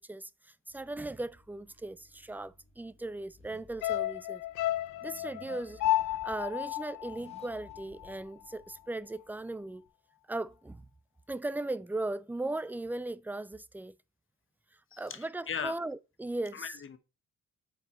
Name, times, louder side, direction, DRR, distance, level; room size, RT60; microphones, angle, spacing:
voice 1, 0.0-4.4 5.0-5.8 6.2-9.8 10.3-10.9 11.3-13.9 15.0-16.7, right 2 dB, 5° right, 0.4 m, -38 dB
Car / Accelerating revving vroom, 0.7-9.9, left 1 dB, 20° left, 2.1 m, -59 dB
sound 1, 3.8-8.2 8.5-8.6, left 14 dB, 85° left, 0.5 m, -33 dB
voice 2, 14.9-15.8 16.5-17.0, left 6 dB, 45° left, 1.1 m, -38 dB
8.0 x 4.7 x 4.3 m
cardioid pair, 90°, 30 cm